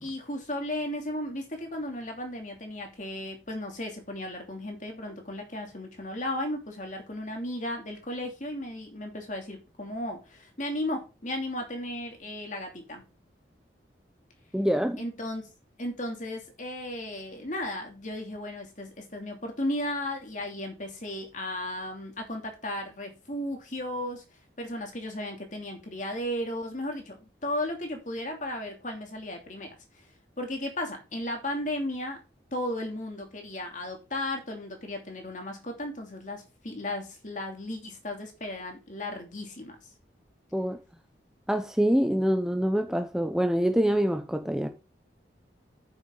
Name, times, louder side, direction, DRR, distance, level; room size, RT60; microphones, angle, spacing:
voice 1, 0.0-13.0 15.0-15.4 15.8-24.2 24.6-30.1 30.4-32.2 32.5-39.8, left 1 dB, 45° left, 2.8 m, -35 dB
voice 2, 14.5-15.0 40.5-40.8 41.5-44.7, equal, 5° right, 0.7 m, -25 dB
9.2 x 7.4 x 3.9 m
head